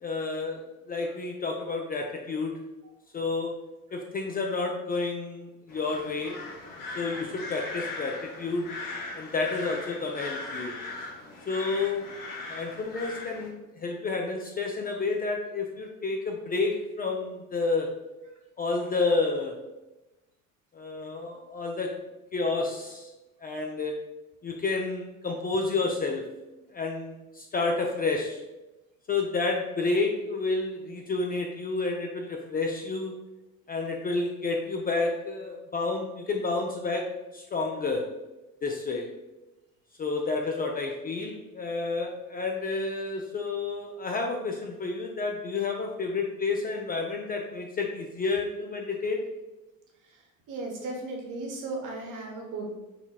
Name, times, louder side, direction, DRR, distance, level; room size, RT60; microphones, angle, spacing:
voice 1, 0.0-2.5 3.1-3.5 3.9-6.4 7.0-8.7 9.2-10.8 11.5-12.0 12.5-17.9 18.6-19.5 20.7-21.9 22.3-23.1 23.4-23.9 24.4-26.2 26.7-28.4 29.1-33.1 33.7-37.0 37.3-38.0 38.6-39.1 40.0-49.2, left 3 dB, 20° left, 1 dB, 0.5 m, -30 dB
sound 1, 5.7-13.5, left 2 dB, 50° left, 1.1 m, -39 dB
voice 2, 50.5-52.7, right 2 dB, 45° right, -1 dB, 1.2 m, -35 dB
4.2 x 3.9 x 2.4 m, 1.0 s
figure-of-eight pair, 60°, 41 cm